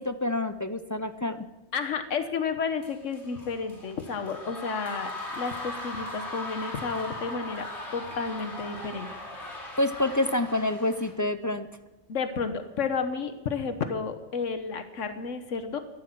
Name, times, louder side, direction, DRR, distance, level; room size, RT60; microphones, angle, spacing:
voice 1, 0.0-1.5 9.8-11.7, left 1 dB, 25° left, 10 dB, 0.4 m, -27 dB
voice 2, 1.7-5.1 5.4-9.1 9.4-9.8 12.1-15.8, left 5 dB, 85° left, 8 dB, 1.5 m, -32 dB
sound 1, 2.8-11.1, left 1 dB, 65° left, 3.3 m, -39 dB
14.0 x 11.5 x 7.7 m, 1.0 s
omnidirectional pair, 1.2 m